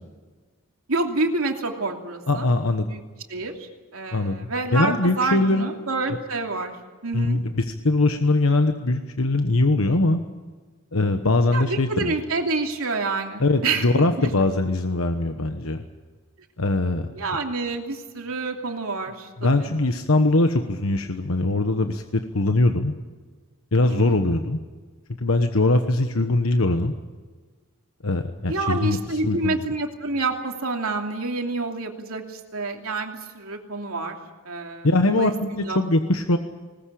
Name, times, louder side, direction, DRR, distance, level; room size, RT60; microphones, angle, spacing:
voice 1, 0.9-2.5 2.9-3.0 3.3-3.5 3.9-6.8 7.0-7.4 11.5-14.3 17.1-19.7 23.9-24.1 28.5-34.2 34.4-35.8, right 3 dB, 85° right, 3 dB, 2.9 m, -28 dB
voice 2, 2.3-2.9 4.1-5.7 7.1-10.2 10.9-12.1 13.4-15.8 16.6-17.1 19.4-22.9 23.7-24.6 25.2-26.9 28.0-29.6 34.8-36.4, left 2 dB, 85° left, 6 dB, 1.2 m, -22 dB
20.5 x 19.5 x 8.7 m, 1.4 s
head